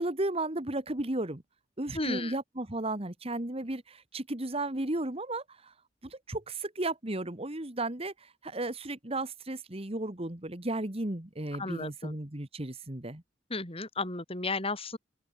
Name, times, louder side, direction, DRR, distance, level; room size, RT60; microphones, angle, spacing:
voice 1, 0.0-1.4 1.8-5.7 6.0-13.2, right 2 dB, 30° right, 1.9 m, -34 dB
voice 2, 1.9-2.4 11.6-12.1 13.5-15.0, left 3 dB, 30° left, 8.0 m, -34 dB
open air
head